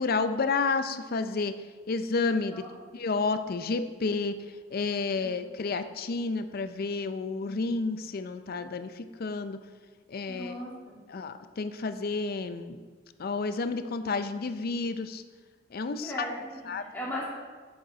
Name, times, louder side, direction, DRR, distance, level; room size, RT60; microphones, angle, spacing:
voice 1, 0.0-1.6 1.9-2.7 2.9-4.3 4.7-9.6 10.1-10.5 11.1-12.8 13.2-15.2 15.7-16.3 16.7-16.8, left 4 dB, 50° left, 10 dB, 0.5 m, -30 dB
voice 2, 10.3-10.7 16.0-17.2, left 1 dB, 10° left, -6 dB, 2.3 m, -37 dB
8.0 x 7.4 x 3.9 m, 1.5 s
head